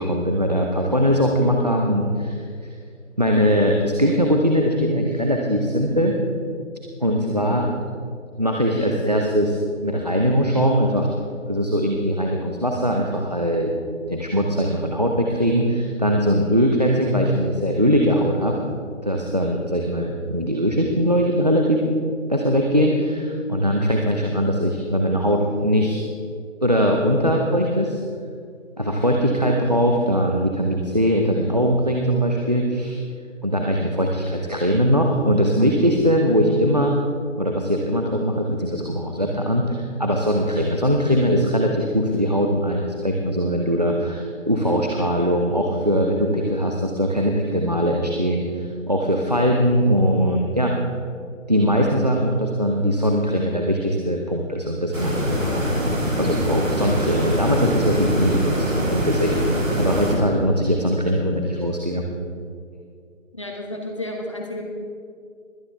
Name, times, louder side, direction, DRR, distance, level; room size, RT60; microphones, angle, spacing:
voice 1, 0.0-2.7 3.2-6.1 7.0-7.8 8.3-9.6 9.8-11.1 11.5-13.7 14.1-18.6 19.0-21.8 22.3-26.1 26.6-28.0 28.8-33.0 33.4-37.0 37.4-50.8 51.5-55.7 56.1-62.0, equal, 30° right, 1 dB, 0.7 m, -21 dB
sound 1, 54.9-60.2, equal, 70° right, 3.8 m, -23 dB
voice 2, 63.3-64.6, left 1 dB, 25° left, 0 dB, 1.1 m, -31 dB
21.0 x 9.4 x 3.5 m, 2.2 s
figure-of-eight pair, 175°, 40 cm